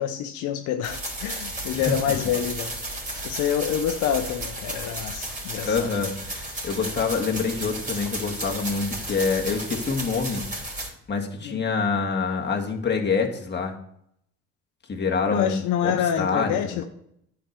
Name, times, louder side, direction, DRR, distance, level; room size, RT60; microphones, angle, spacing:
voice 1, 0.0-2.7 3.2-5.9 11.4-11.6 15.3-16.8, left 9 dB, 85° left, 6 dB, 0.8 m, -27 dB
sound 1, 0.8-10.9, right 1 dB, 25° right, 3.6 m, -34 dB
voice 2, 5.6-10.4 11.1-13.7 14.9-16.8, left 5 dB, 35° left, 1 dB, 1.9 m, -26 dB
10.0 x 4.7 x 6.6 m, 0.72 s
supercardioid pair, 75°, 29 cm